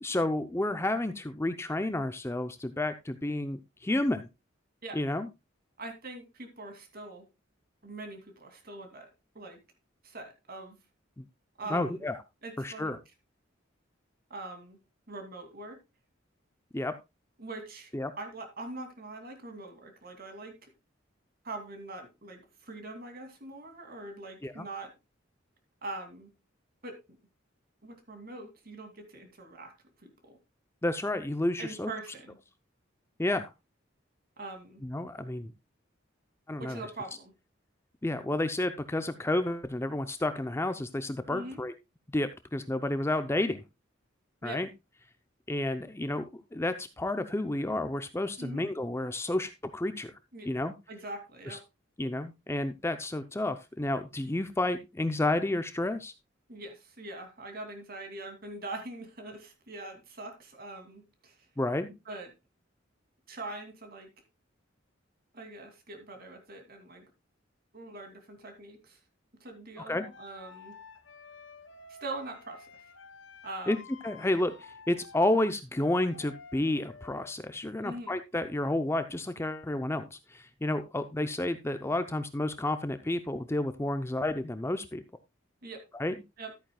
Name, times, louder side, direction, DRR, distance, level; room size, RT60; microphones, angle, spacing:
voice 1, 0.0-4.3 4.9-5.3 11.2-11.3 11.7-12.1 12.6-13.0 16.7-16.9 17.9-18.1 24.4-24.7 30.8-31.9 33.2-33.5 34.8-35.5 36.5-36.8 38.0-41.7 42.1-43.6 44.4-44.7 45.5-50.1 50.5-50.7 51.5-51.6 52.0-56.1 61.6-61.9 69.8-70.1 73.7-73.8 74.0-85.0 85.9-86.1, left 1 dB, 15° left, 0.5 m, -31 dB
voice 2, 5.8-7.2 7.8-9.1 9.3-9.6 10.0-10.8 11.6-12.0 12.4-12.9 14.3-14.8 15.1-15.8 17.4-20.7 21.4-24.9 25.8-26.3 26.8-27.0 27.8-29.7 30.0-30.4 31.6-32.4 34.4-34.8 36.6-37.3 41.3-41.6 44.4-44.6 48.4-48.6 50.3-50.5 50.9-51.6 56.5-61.5 62.1-62.3 63.3-64.1 65.3-67.1 67.7-69.0 69.4-70.8 71.9-72.7 73.4-73.8 77.8-78.2 85.6-85.8 86.4-86.5, right 2 dB, 50° right, 2.6 m, -43 dB
sound 1, 70.1-77.3, left 4 dB, 75° left, 1.1 m, -51 dB
13.0 x 9.0 x 2.3 m
head